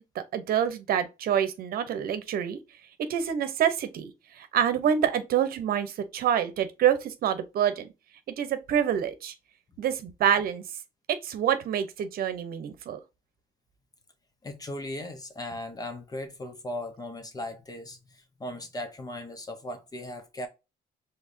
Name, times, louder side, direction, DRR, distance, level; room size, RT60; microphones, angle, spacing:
voice 1, 0.1-2.6 3.1-7.9 8.3-9.3 9.8-10.6 11.1-13.0, right 9 dB, 60° right, 0.9 m, -27 dB
voice 2, 14.4-20.5, left 1 dB, 20° left, 1.1 m, -38 dB
4.7 x 3.4 x 2.7 m
cardioid pair, 110°, 17 cm